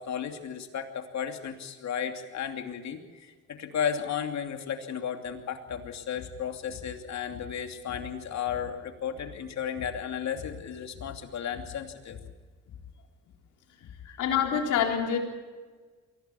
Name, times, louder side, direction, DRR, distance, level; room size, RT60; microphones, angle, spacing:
voice 1, 0.0-12.2 12.7-12.8 13.8-14.2, left 8 dB, 65° left, 5 dB, 2.8 m, -34 dB
voice 2, 14.2-15.2, left 8 dB, 85° left, 2 dB, 4.1 m, -26 dB
23.0 x 17.0 x 7.1 m, 1.4 s
cardioid pair, 90°, 30 cm